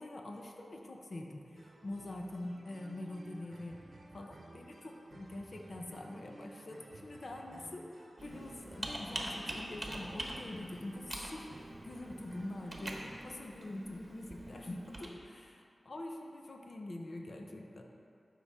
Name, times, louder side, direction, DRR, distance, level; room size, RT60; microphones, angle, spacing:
voice 1, 0.0-3.8 4.1-11.5 11.8-17.8, left 1 dB, 55° left, 2 dB, 0.8 m, -45 dB
sound 1, 1.6-13.4, right 2 dB, 60° right, 0.8 m, -55 dB
Computer keyboard, 8.2-15.1, right 1 dB, 35° right, 1.1 m, -44 dB
12.5 x 5.7 x 3.7 m, 2.5 s
wide cardioid pair, 90°, 0 cm